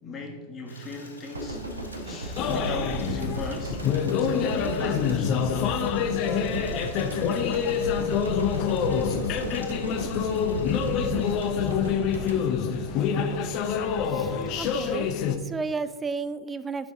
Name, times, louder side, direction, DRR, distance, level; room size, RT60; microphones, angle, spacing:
voice 1, 0.0-1.6 2.0-3.8 4.1-5.3, left 2 dB, 25° left, 2 dB, 1.4 m, -37 dB
Water tap faucet / Liquid, 0.7-12.2, left 2 dB, 80° left, 1.8 m, -48 dB
sound 1, 1.3-13.5 13.8-14.0, right 1 dB, 75° right, 1.2 m, -35 dB
sound 2, 2.4-15.4, left 7 dB, 40° left, 0.7 m, -26 dB
voice 2, 14.1-15.1 15.4-16.9, right 4 dB, 15° right, 14 dB, 0.4 m, -33 dB
9.2 x 6.3 x 3.8 m, 1.3 s
figure-of-eight pair, 90°, 0 cm